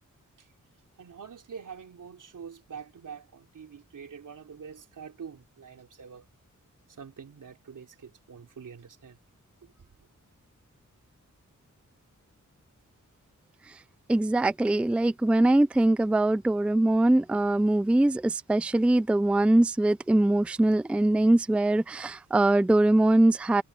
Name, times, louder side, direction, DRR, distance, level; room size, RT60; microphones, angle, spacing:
voice 1, 1.0-6.3 6.9-9.2 9.6-9.9, right 6 dB, 85° right, 3.6 m, -45 dB
voice 2, 14.1-23.6, right 1 dB, 5° right, 0.4 m, -22 dB
wide cardioid pair, 105°, 31 cm